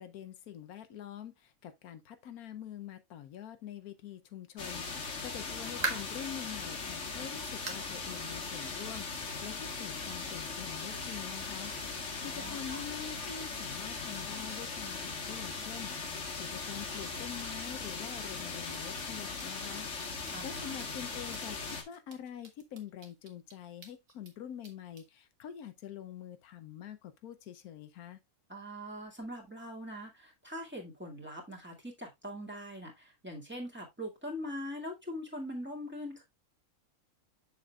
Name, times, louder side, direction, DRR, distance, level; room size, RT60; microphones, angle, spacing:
voice 1, 0.0-19.9 20.2-28.2, left 9 dB, 85° left, 1.2 m, -46 dB
sound 1, 4.6-21.8, left 4 dB, 55° left, 1.8 m, -39 dB
sound 2, 5.8-6.3 6.8-6.9 7.7-7.9 8.2-8.3 8.9-9.0 10.0-10.1, right 3 dB, 30° right, 1.3 m, -37 dB
voice 2, 12.2-12.8 20.3-20.7 28.5-36.2, equal, 5° right, 2.1 m, -42 dB
sound 3, 18.0-18.1 18.4-18.5 18.7-19.1 19.4-20.0 20.3-20.4 20.8-20.9 21.3-21.4 21.7-24.3 24.6-25.0, right 4 dB, 65° right, 1.9 m, -55 dB
7.1 x 7.0 x 2.3 m
omnidirectional pair, 1.6 m